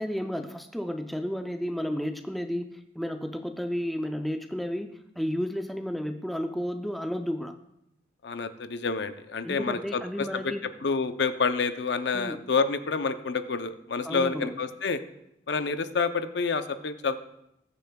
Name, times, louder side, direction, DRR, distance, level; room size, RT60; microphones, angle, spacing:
voice 1, 0.0-7.6 9.4-10.6 12.1-12.4 14.0-14.5, equal, ahead, 5 dB, 0.5 m, -32 dB
voice 2, 8.2-10.5 10.8-15.0 15.5-17.2, left 4 dB, 70° left, 10 dB, 0.6 m, -28 dB
20.5 x 6.9 x 2.3 m, 0.80 s
head